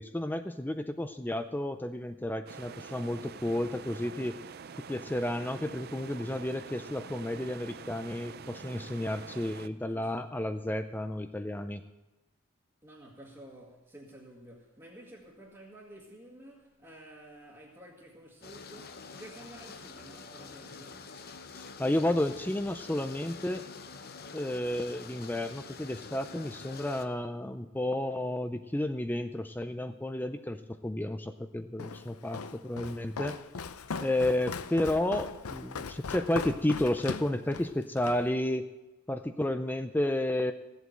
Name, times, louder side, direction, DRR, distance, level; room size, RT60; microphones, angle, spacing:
voice 1, 0.0-4.4 4.9-11.8 21.5-23.6 24.3-33.4 34.0-38.7 39.1-40.5, left 1 dB, 10° left, 0.4 m, -32 dB
sound 1, 2.5-9.7, right 5 dB, 45° right, 0.5 m, -46 dB
voice 2, 9.9-10.3 12.8-21.2, right 1 dB, 15° right, 1.8 m, -51 dB
sound 2, 18.4-27.1, left 4 dB, 45° left, 0.8 m, -47 dB
Walk footsteps, 31.8-38.3, left 5 dB, 85° left, 0.6 m, -39 dB
15.5 x 8.0 x 7.9 m
head